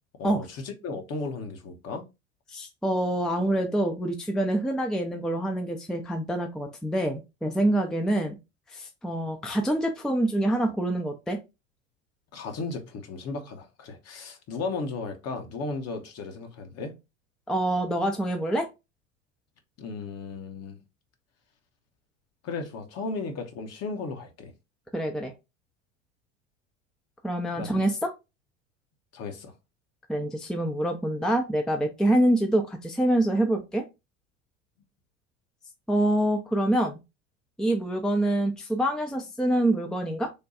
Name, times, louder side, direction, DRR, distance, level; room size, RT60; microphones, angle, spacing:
voice 1, 0.2-2.1 12.3-17.0 19.8-20.8 22.4-24.5 27.6-27.7 29.1-29.5, left 3 dB, 40° left, 1.1 m, -35 dB
voice 2, 2.5-8.4 8.7-11.4 17.5-18.7 24.9-25.3 27.2-28.1 30.1-33.8 35.9-37.0 37.6-40.3, right 1 dB, ahead, 0.5 m, -26 dB
3.5 x 2.2 x 4.1 m
hypercardioid pair, 80°, 37 cm